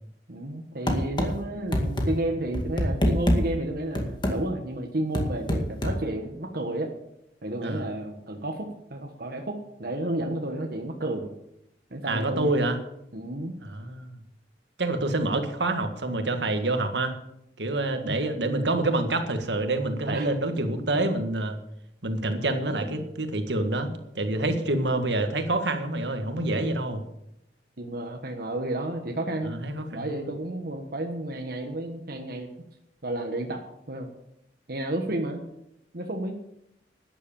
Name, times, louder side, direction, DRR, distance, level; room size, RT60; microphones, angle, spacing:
voice 1, 0.3-6.9 7.4-11.3 11.9-12.6 13.1-13.6 18.0-18.2 20.1-20.3 22.7-23.1 23.8-24.0 24.3-24.9 27.8-29.6 29.9-32.5 33.0-33.6 33.9-34.1 34.7-35.4 35.9-36.4, right 1 dB, 60° right, 2 dB, 1.4 m, -32 dB
sound 1, 0.9-1.3 1.7-2.1 2.5-3.4 4.0-4.4 5.1-6.0, equal, 25° left, 2.0 m, -24 dB
voice 2, 12.0-12.8 13.6-14.1 14.8-17.1 17.6-21.6 22.0-23.9 24.2-27.0 29.5-30.3, right 2 dB, 75° right, 6 dB, 1.8 m, -27 dB
12.5 x 9.9 x 7.1 m, 0.81 s
head